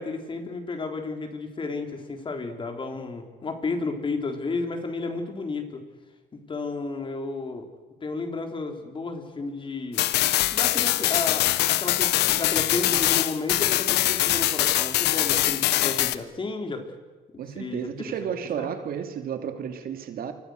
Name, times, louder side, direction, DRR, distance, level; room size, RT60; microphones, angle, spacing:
voice 1, 0.0-5.8 6.3-7.7 8.0-10.1 10.5-16.8 17.3-18.7, left 3 dB, 30° left, 5 dB, 4.1 m, -32 dB
sound 1, 10.0-16.2, left 15 dB, 80° left, 1.2 m, -23 dB
voice 2, 17.4-20.3, right 8 dB, 60° right, 7 dB, 2.7 m, -32 dB
28.5 x 26.0 x 6.6 m, 1.2 s
cardioid pair, 110°, 17 cm